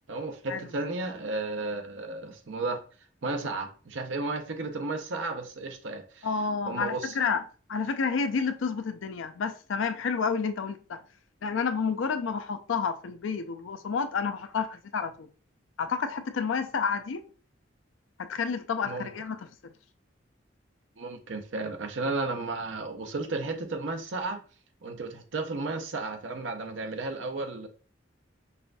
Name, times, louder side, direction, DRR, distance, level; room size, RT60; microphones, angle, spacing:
voice 1, 0.1-2.8 3.2-6.3 6.7-7.2 18.9-19.1 21.0-24.4 24.8-27.7, right 3 dB, 75° right, 0.6 m, -33 dB
voice 2, 6.2-7.4 7.7-11.0 11.4-15.3 15.8-17.2 18.2-19.5, left 5 dB, 90° left, 0.4 m, -30 dB
5.5 x 2.5 x 2.2 m
head